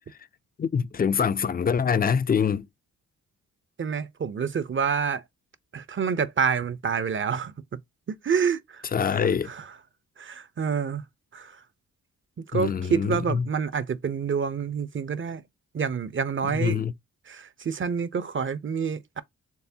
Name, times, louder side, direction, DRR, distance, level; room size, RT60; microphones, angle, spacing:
voice 1, 0.6-2.7 8.9-9.5 12.5-13.5 16.4-16.9, left 7 dB, 25° left, 0.5 m, -24 dB
voice 2, 3.8-5.2 5.7-7.8 8.1-9.2 9.5-9.6 10.2-11.0 11.3-11.5 12.5-15.4 15.7-16.8 17.3-19.2, right 6 dB, 35° right, 0.6 m, -28 dB
4.7 x 3.2 x 2.7 m
supercardioid pair, 45°, 35 cm